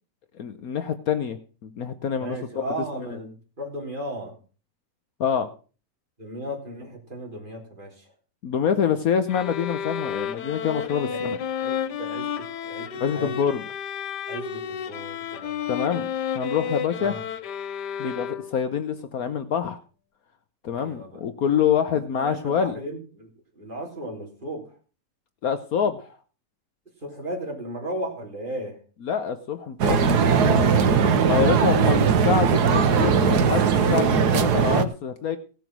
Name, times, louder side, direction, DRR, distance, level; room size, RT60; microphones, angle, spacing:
voice 1, 0.3-2.6 3.0-3.2 5.2-5.5 8.4-11.4 13.0-13.6 15.7-16.1 16.3-17.1 18.0-19.8 20.6-22.8 25.4-26.2 29.0-30.2 31.2-35.4, left 7 dB, 65° left, 10 dB, 1.2 m, -26 dB
voice 2, 2.2-4.4 6.2-8.1 11.1-11.3 11.6-13.5 14.3-16.0 17.0-17.2 20.7-21.2 22.2-24.8 27.0-28.8, right 1 dB, 30° right, -1 dB, 3.6 m, -36 dB
sound 1, 9.3-18.7, left 8 dB, 80° left, 1.4 m, -32 dB
sound 2, 29.8-34.8, right 6 dB, 70° right, 1.6 m, -19 dB
17.0 x 7.1 x 6.0 m, 0.38 s
omnidirectional pair, 1.8 m